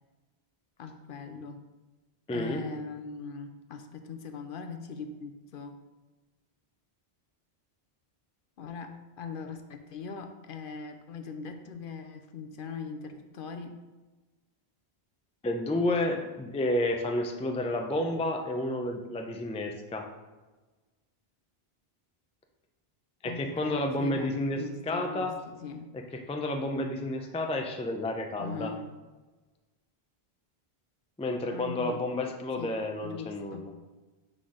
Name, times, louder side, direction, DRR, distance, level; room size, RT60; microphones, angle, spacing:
voice 1, 0.8-1.6 2.3-5.8 8.6-13.8 23.2-25.9 28.4-28.9 31.5-32.0 32.6-32.8 33.0-33.7, left 5 dB, 60° left, 6 dB, 0.7 m, -41 dB
voice 2, 2.3-2.6 15.4-20.1 23.2-25.3 26.3-28.7 31.2-33.7, left 1 dB, 10° left, 3 dB, 0.3 m, -30 dB
6.0 x 3.9 x 4.9 m, 1.2 s
omnidirectional pair, 1.1 m